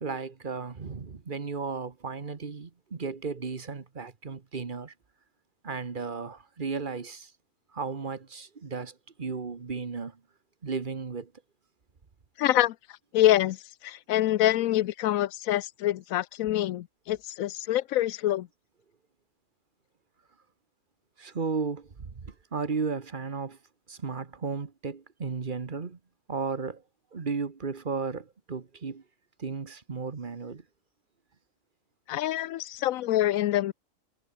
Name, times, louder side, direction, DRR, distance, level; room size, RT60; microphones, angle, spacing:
voice 1, 0.0-4.9 5.6-7.3 7.7-10.2 10.6-11.3 21.2-23.6 23.9-26.0 26.3-26.8 27.1-29.0 29.4-30.6, right 5 dB, 40° right, 1.4 m, -34 dB
voice 2, 12.4-12.7 13.1-13.6 13.8-18.5 32.1-33.7, left 14 dB, 85° left, 1.0 m, -25 dB
omnidirectional pair, 1.4 m